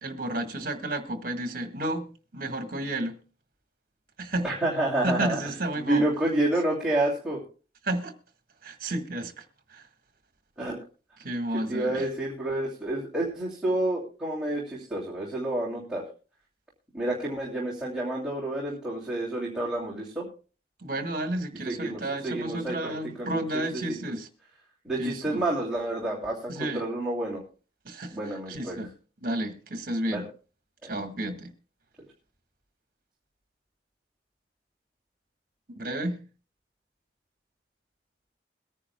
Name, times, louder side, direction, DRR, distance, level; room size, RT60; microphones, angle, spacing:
voice 1, 0.0-2.0 2.3-3.2 4.2-4.5 5.0-6.0 7.8-8.1 8.6-9.3 9.7-9.8 11.2-12.0 20.8-24.3 25.0-25.4 26.5-26.8 27.8-28.1 28.5-28.9 29.2-30.2 30.9-31.5 35.7-36.2, right 1 dB, 50° right, 1.5 m, -31 dB
voice 2, 4.4-7.4 10.6-10.8 11.7-16.0 16.9-20.3 21.7-24.0 24.8-27.4 28.1-28.8 30.1-30.2 30.8-31.0, right 1 dB, 5° right, 2.8 m, -29 dB
22.5 x 9.9 x 2.2 m
head